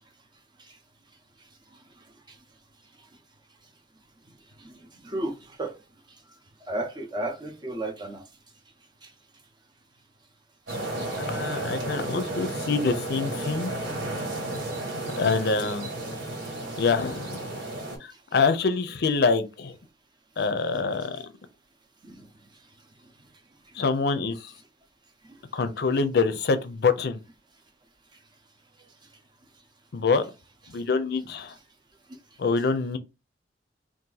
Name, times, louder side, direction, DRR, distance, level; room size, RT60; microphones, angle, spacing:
voice 1, 5.0-5.7 6.7-8.2 22.0-22.3, right 1 dB, 25° right, 0.7 m, -33 dB
sound 1, 10.7-18.0, right 1 dB, 70° right, 1.6 m, -33 dB
voice 2, 11.2-13.7 15.2-15.9 16.8-17.4 18.0-19.8 20.4-21.2 23.8-24.5 25.5-27.2 29.9-30.2 30.7-31.5 32.4-33.0, left 4 dB, 65° left, 0.5 m, -25 dB
2.8 x 2.5 x 3.8 m
head